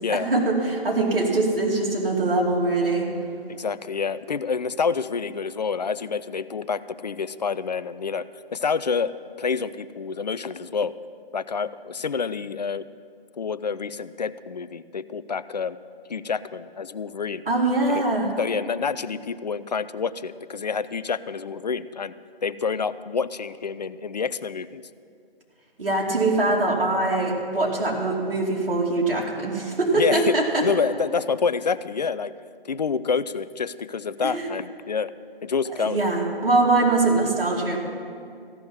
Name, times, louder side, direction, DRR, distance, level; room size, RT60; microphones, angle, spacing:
voice 1, 0.1-3.1 17.5-18.3 25.8-30.6 34.2-34.5 35.8-37.8, right 2 dB, 65° right, -2 dB, 2.8 m, -23 dB
voice 2, 3.5-8.3 8.5-9.1 9.4-10.9 11.3-12.9 13.4-15.8 16.1-17.4 17.9-18.0 18.4-22.1 22.4-24.8 29.9-32.3 32.6-35.1 35.4-36.0, left 5 dB, 45° left, 16 dB, 0.4 m, -28 dB
15.0 x 6.0 x 9.5 m, 2.3 s
figure-of-eight pair, 150°, 30 cm